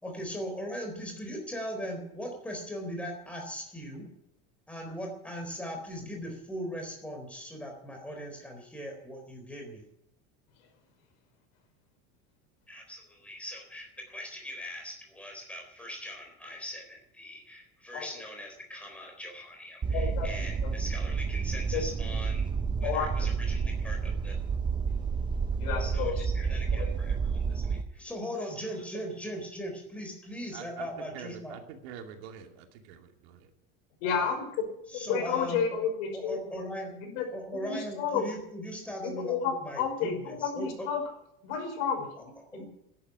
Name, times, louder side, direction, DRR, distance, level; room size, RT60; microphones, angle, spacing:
voice 1, 0.0-4.1 4.7-9.8 12.7-22.5 22.8-24.3 25.8-31.6 34.1-34.3 34.9-35.8 36.1-40.9 42.5-42.6, equal, 5° left, 2 dB, 4.1 m, -40 dB
sound 1, 19.8-27.8, right 5 dB, 15° right, 0.6 m, -30 dB
voice 2, 19.9-20.7 21.7-21.8 22.8-23.3 25.6-26.2 26.7-26.9 34.0-34.6 34.9-36.6 37.0-37.3 37.5-38.2 39.0-41.1 41.4-42.6, left 7 dB, 75° left, 4 dB, 5.4 m, -32 dB
voice 3, 30.5-30.9 31.1-33.5, right 8 dB, 85° right, 4 dB, 2.7 m, -45 dB
13.5 x 11.0 x 9.7 m, 0.77 s
cardioid pair, 175°, 31 cm